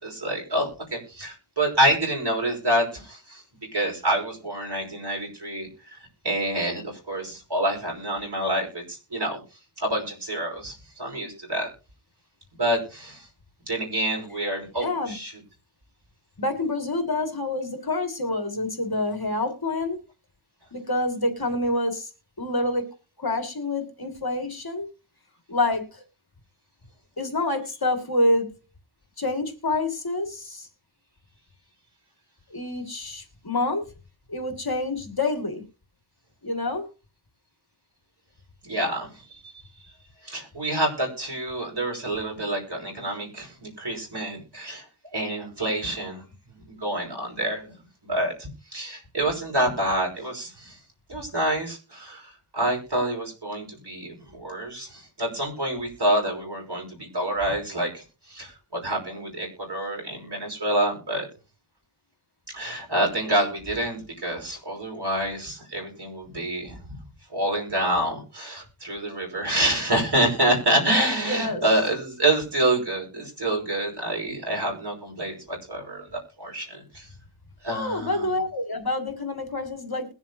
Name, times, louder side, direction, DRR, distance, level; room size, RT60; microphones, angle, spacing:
voice 1, 0.0-3.4 3.7-6.0 6.2-9.4 9.8-11.7 12.5-13.3 13.6-15.3 38.6-39.2 40.2-44.8 45.1-46.2 46.5-47.7 48.0-50.8 51.1-61.3 62.5-66.9 67.3-76.1 76.4-77.1 77.6-78.3, right 1 dB, 50° right, 1 dB, 5.5 m, -27 dB
voice 2, 14.8-15.2 16.4-20.0 20.7-22.1 22.4-22.9 23.2-24.9 25.5-26.0 27.2-28.5 29.2-30.7 32.5-33.9 34.3-35.6 36.4-36.9 71.2-71.6 77.7-80.1, left 2 dB, 45° left, 5 dB, 2.4 m, -27 dB
21.5 x 7.3 x 2.8 m, 0.32 s
wide cardioid pair, 60°, 50 cm